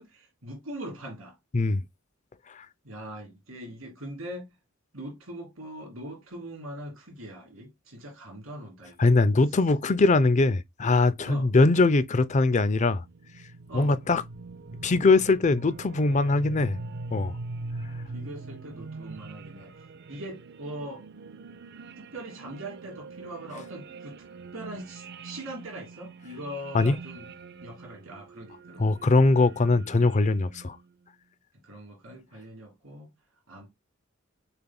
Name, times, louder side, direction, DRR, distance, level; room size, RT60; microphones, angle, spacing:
voice 1, 0.0-1.4 2.8-4.5 4.9-9.1 11.2-11.5 13.7-14.0 18.1-21.1 22.0-24.2 24.5-27.3 27.6-29.2 31.6-33.1 33.5-33.7, right 1 dB, 80° right, 3.4 m, -41 dB
voice 2, 9.0-13.0 13.7-14.2 14.8-16.8 17.1-17.3 26.7-27.0 28.8-30.8, left 3 dB, 35° left, 0.5 m, -21 dB
sound 1, 13.0-30.9, right 3 dB, 55° right, 0.5 m, -43 dB
6.9 x 3.5 x 2.2 m
head